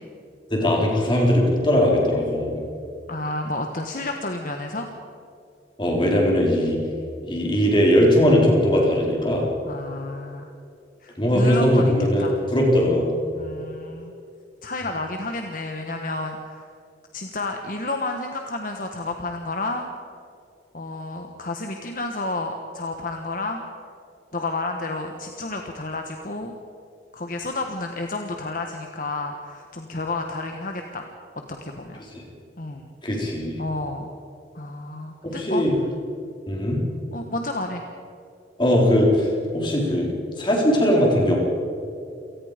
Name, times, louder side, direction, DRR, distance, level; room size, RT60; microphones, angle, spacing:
voice 1, 0.5-2.6 5.8-6.8 7.3-9.5 11.2-13.1 32.2-32.3 33.0-33.6 35.2-35.8 36.5-36.8 38.6-39.3 39.5-41.4, equal, 25° left, -2 dB, 4.4 m, -20 dB
voice 2, 3.1-4.9 9.7-10.5 11.0-11.9 12.2-12.4 13.3-14.1 14.6-16.7 17.1-19.9 20.7-23.6 24.3-26.6 27.1-31.1 31.6-32.0 32.6-32.9 33.6-34.1 34.5-35.6 37.1-37.8, left 2 dB, 50° left, 3 dB, 1.4 m, -30 dB
28.0 x 18.5 x 5.2 m, 2.5 s
head